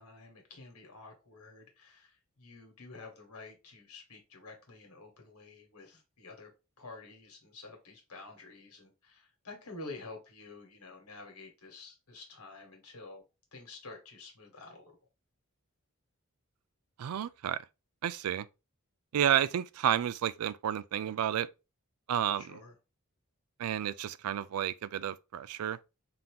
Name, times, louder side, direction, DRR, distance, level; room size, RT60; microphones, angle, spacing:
voice 1, 0.0-6.5 6.8-13.2 13.5-14.9 22.4-22.7, left 3 dB, 80° left, 1.5 m, -49 dB
voice 2, 17.0-17.6 18.0-18.5 19.1-21.5 22.1-22.6 23.6-25.8, right 10 dB, 80° right, 0.3 m, -31 dB
3.8 x 2.9 x 3.5 m
head